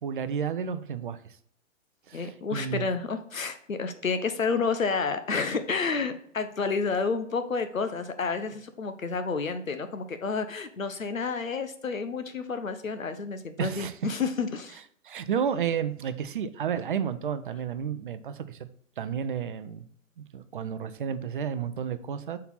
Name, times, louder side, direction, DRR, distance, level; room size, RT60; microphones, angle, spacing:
voice 1, 0.0-1.4 2.1-2.9 13.6-14.0 15.0-18.7 19.0-19.8 20.2-22.4, right 8 dB, 40° right, 12 dB, 0.5 m, -31 dB
voice 2, 2.1-14.8, left 4 dB, 80° left, 9 dB, 0.9 m, -30 dB
4.3 x 4.1 x 5.6 m, 0.65 s
figure-of-eight pair, 120°, 39 cm